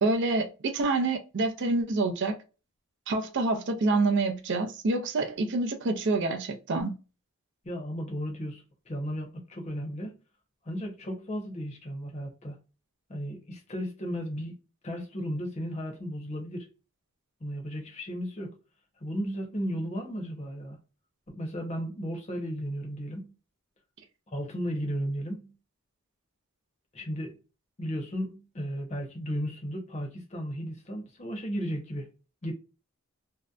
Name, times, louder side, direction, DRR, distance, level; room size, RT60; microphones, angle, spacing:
voice 1, 0.0-2.4 3.1-7.0, right 3 dB, 55° right, 0.4 m, -27 dB
voice 2, 7.6-10.1 10.6-12.6 13.1-14.6 14.8-16.7 17.4-18.5 19.0-20.8 21.3-23.3 24.3-25.5 26.9-27.4 27.8-32.1 32.4-32.5, equal, 30° left, 0.7 m, -34 dB
2.6 x 2.1 x 2.3 m
head